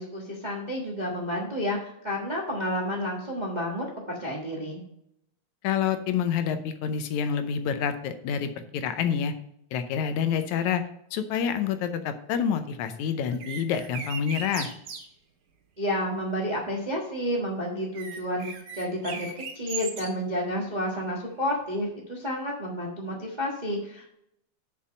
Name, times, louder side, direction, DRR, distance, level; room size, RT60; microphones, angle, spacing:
voice 1, 0.0-4.8 15.8-24.1, equal, 30° right, -2 dB, 0.8 m, -30 dB
voice 2, 5.6-9.3 9.7-10.8 11.1-14.7, left 7 dB, 80° left, 9 dB, 2.1 m, -27 dB
sound 1, 13.3-15.1 17.9-20.1, right 6 dB, 75° right, 2.8 m, -37 dB
6.6 x 5.5 x 7.1 m, 0.75 s
omnidirectional pair, 3.3 m